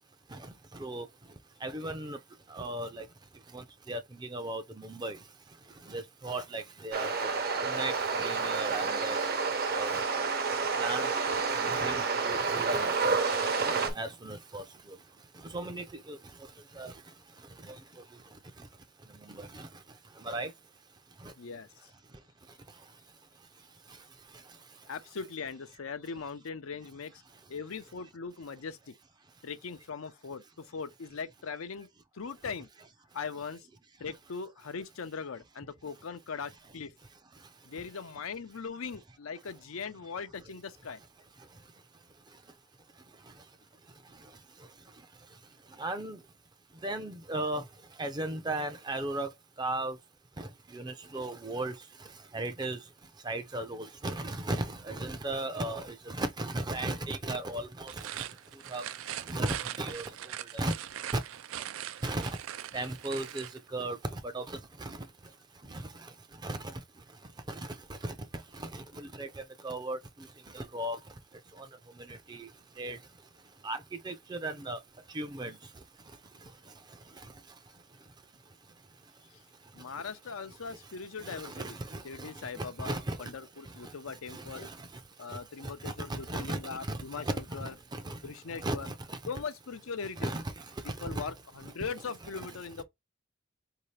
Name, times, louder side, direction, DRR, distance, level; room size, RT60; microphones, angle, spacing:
voice 1, 1.6-2.2 2.5-3.0 3.5-3.6 3.9-5.2 5.9-7.1 7.7-9.2 9.7-9.9 10.8-11.1 11.5-12.0 12.5-12.9 13.7-14.6 15.5-15.8 16.8-16.9 19.4-19.5 20.2-20.5 45.8-46.2 46.8-47.6 48.0-49.3 49.6-50.0 50.7-51.7 52.3-52.8 53.3-57.9 58.7-58.8 59.3-60.0 60.5-60.7 61.1-61.2 62.0-62.4 62.7-63.5 63.7-64.0 64.3-64.4 64.8-65.0 65.7-65.8 66.4-66.6 68.0-68.1 69.2-69.3 69.6-70.0 70.5-71.0 72.3-72.5 72.8-73.0 73.6-73.8 74.0-74.8 75.1-75.5 81.2-81.7 82.2-82.3 82.8-83.2 84.3-84.7 86.1-86.6 86.9-87.0 87.9-88.2 88.6-88.9 90.2-90.4 91.1-91.2, right 2 dB, 20° right, 0.5 m, -35 dB
sound 1, 6.9-13.9, right 4 dB, 50° right, 0.8 m, -29 dB
voice 2, 21.4-21.9 24.9-27.2 27.5-28.9 29.4-31.9 32.1-32.7 33.1-33.7 34.0-36.9 37.6-41.0 79.3-79.4 79.7-81.8 82.0-84.7 85.2-87.7 88.2-88.9 89.3-90.3 91.0-92.8, left 5 dB, 85° left, 0.6 m, -40 dB
sound 2, 57.8-63.6, right 11 dB, 75° right, 0.4 m, -41 dB
4.7 x 2.7 x 3.2 m
head